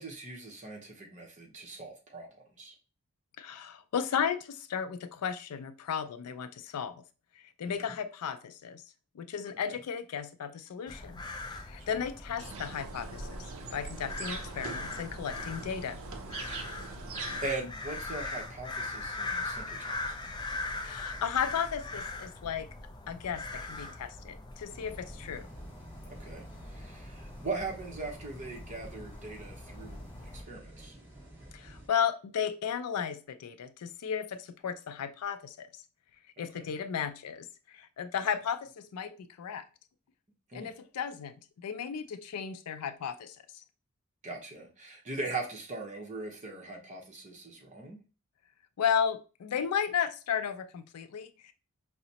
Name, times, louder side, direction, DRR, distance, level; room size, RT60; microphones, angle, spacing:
voice 1, 0.0-2.3 2.6-2.7 7.6-7.9 9.7-9.8 11.8-12.0 16.9-17.0 17.4-20.2 26.1-26.4 26.7-31.0 36.4-36.7 40.5-40.7 44.2-48.0, right 3 dB, 35° right, 0 dB, 0.8 m, -40 dB
voice 2, 3.4-7.0 7.6-8.8 9.2-11.2 11.5-13.4 13.7-16.0 20.8-22.7 23.1-25.4 31.5-35.7 36.4-39.6 40.5-43.4 48.8-51.5, left 7 dB, 90° left, 10 dB, 0.4 m, -34 dB
sound 1, 10.9-30.4, left 3 dB, 20° left, 0.4 m, -41 dB
sound 2, 12.4-17.5, right 4 dB, 60° right, 0.5 m, -42 dB
sound 3, 24.7-31.9, right 1 dB, 10° right, 1.4 m, -51 dB
4.8 x 2.0 x 2.8 m, 0.33 s
head